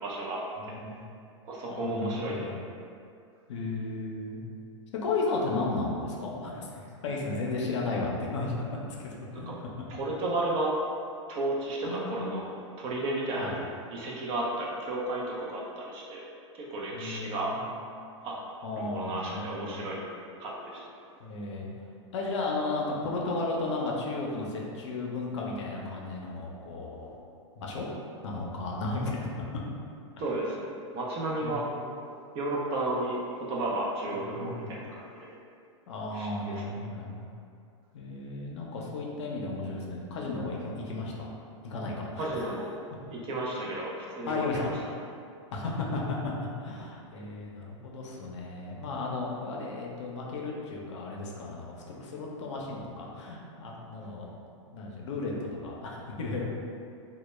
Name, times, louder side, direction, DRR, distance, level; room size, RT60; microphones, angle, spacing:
voice 1, 0.0-0.4 0.7-0.8 1.5-2.4 9.3-9.5 9.9-10.7 11.3-16.2 16.5-17.5 18.2-18.3 18.7-20.0 20.4-20.8 30.2-30.7 30.9-31.6 32.3-33.2 33.5-35.3 36.1-36.6 42.2-42.7 43.1-44.7, right 2 dB, 35° right, -3 dB, 0.5 m, -33 dB
voice 2, 0.6-1.1 1.7-2.5 3.5-4.4 5.0-8.5 9.0-9.5 11.8-12.3 13.3-13.6 16.9-17.6 18.6-19.9 21.2-21.7 22.1-27.1 27.6-27.9 28.2-29.3 31.4-31.8 34.2-34.7 35.9-37.3 37.9-41.3 41.6-42.5 44.3-44.7 45.5-54.4 54.7-56.4, left 3 dB, 65° left, -2 dB, 0.5 m, -34 dB
2.1 x 2.1 x 3.0 m, 2.4 s
hypercardioid pair, 110°, 16 cm